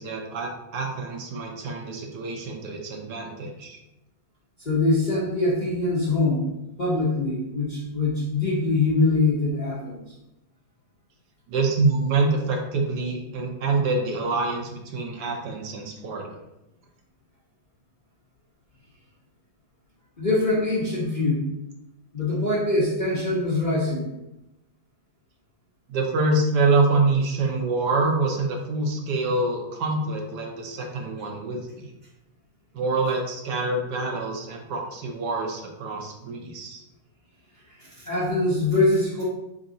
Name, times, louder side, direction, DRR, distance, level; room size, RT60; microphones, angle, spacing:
voice 1, 0.0-3.8 11.5-16.4 25.9-31.9 32.7-36.8, right 3 dB, 65° right, 1 dB, 1.2 m, -26 dB
voice 2, 4.6-6.5 6.8-10.0 20.2-21.5 22.1-24.1 37.8-39.2, left 2 dB, 45° left, -7 dB, 0.5 m, -23 dB
3.8 x 3.5 x 3.9 m, 0.90 s
omnidirectional pair, 2.2 m